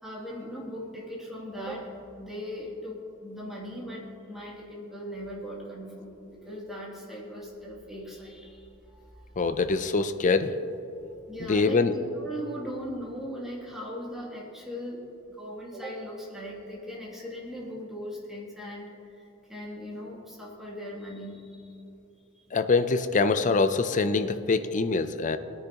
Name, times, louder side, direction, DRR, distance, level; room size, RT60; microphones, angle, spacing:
voice 1, 0.0-9.3 11.0-19.2 19.5-21.8, equal, ahead, -6 dB, 2.6 m, -39 dB
voice 2, 9.4-10.6 11.4-11.9 22.5-25.4, left 4 dB, 35° left, 10 dB, 0.5 m, -24 dB
20.0 x 9.9 x 3.0 m, 2.9 s
head